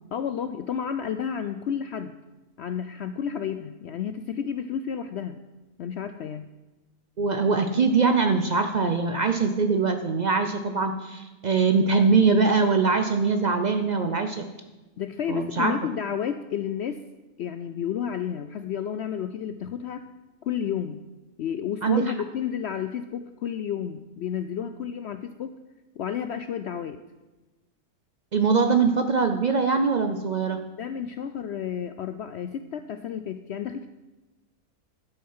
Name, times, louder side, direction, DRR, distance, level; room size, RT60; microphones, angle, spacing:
voice 1, 0.1-2.2 2.6-5.4 5.8-6.5 15.0-17.0 17.4-20.0 20.4-21.0 21.4-25.5 26.0-27.0 30.8-33.9, left 8 dB, 75° left, 10 dB, 0.6 m, -31 dB
voice 2, 7.2-14.5 15.3-15.7 21.8-22.0 28.3-30.6, right 4 dB, 80° right, 7 dB, 0.4 m, -22 dB
12.0 x 7.5 x 5.5 m, 1.1 s
omnidirectional pair, 1.6 m